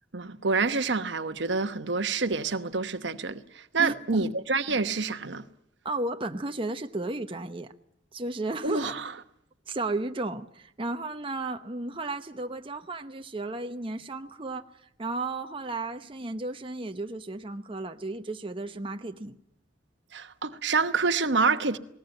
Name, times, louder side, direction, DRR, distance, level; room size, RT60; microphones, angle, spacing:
voice 1, 0.1-5.5 8.6-9.1 20.1-21.8, right 4 dB, 70° right, 1.1 m, -27 dB
voice 2, 3.8-4.3 5.8-7.7 8.1-9.0 9.7-19.4, right 2 dB, 30° right, 0.9 m, -34 dB
20.0 x 18.5 x 9.1 m
head